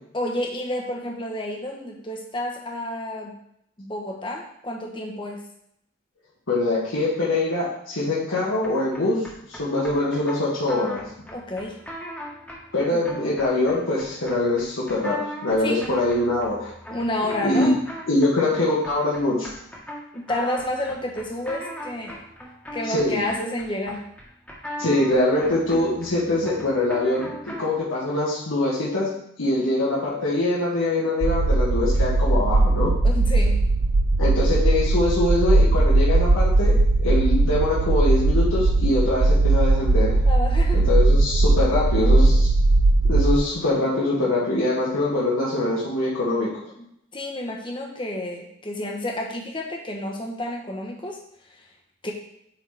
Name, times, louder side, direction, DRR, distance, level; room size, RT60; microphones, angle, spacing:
voice 1, 0.1-3.3 3.8-5.4 11.3-11.8 12.9-13.0 15.6-15.9 16.9-17.8 20.1-22.2 22.7-24.0 33.0-33.6 40.3-40.9 46.8-46.9 47.1-51.2 52.0-52.1, left 1 dB, 25° left, 0 dB, 1.0 m, -30 dB
voice 2, 6.5-9.2 9.5-11.0 12.7-16.7 17.4-17.7 18.1-19.5 22.9-23.2 24.8-27.3 27.6-29.1 29.4-32.9 34.2-40.2 40.7-42.5 43.0-46.5, left 2 dB, 85° left, -7 dB, 1.6 m, -23 dB
sound 1, 8.6-27.8, equal, 5° left, 1.4 m, -39 dB
sound 2, 31.2-43.4, right 2 dB, 50° right, 0.4 m, -19 dB
8.8 x 4.1 x 3.4 m, 0.74 s
head